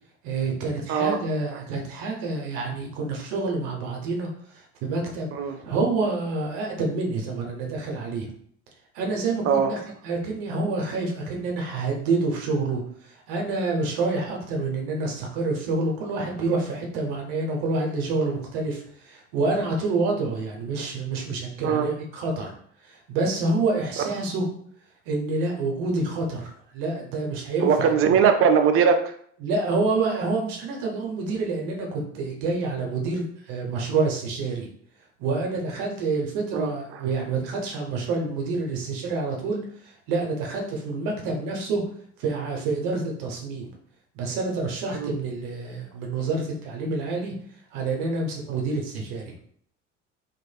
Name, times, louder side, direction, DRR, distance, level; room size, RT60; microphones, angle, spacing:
voice 1, 0.2-5.3 5.6-8.3 8.9-22.5 22.8-24.5 25.1-27.9 29.4-34.7 35.2-41.8 42.2-43.7 44.1-47.4 47.7-49.3, right 3 dB, 60° right, 1 dB, 0.9 m, -28 dB
voice 2, 27.6-29.1 36.5-36.7 45.0-45.1, right 6 dB, 40° right, 7 dB, 0.4 m, -20 dB
3.1 x 2.5 x 2.3 m, 0.62 s
figure-of-eight pair, 60°, 37 cm